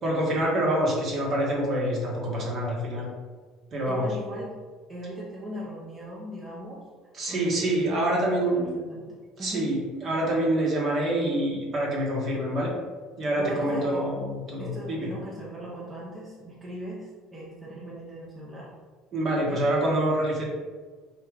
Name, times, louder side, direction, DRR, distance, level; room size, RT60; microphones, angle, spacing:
voice 1, 0.0-3.1 3.7-4.1 7.2-8.7 9.4-12.7 13.2-15.1 19.1-20.4, right 1 dB, 50° right, -3 dB, 1.2 m, -26 dB
voice 2, 3.9-4.6 4.9-6.8 7.3-7.5 8.0-9.1 9.4-9.7 13.4-14.1 14.6-18.7 19.4-19.6, equal, 20° right, -5 dB, 0.8 m, -39 dB
3.2 x 2.4 x 3.7 m, 1.5 s
hypercardioid pair, 75°, 0 cm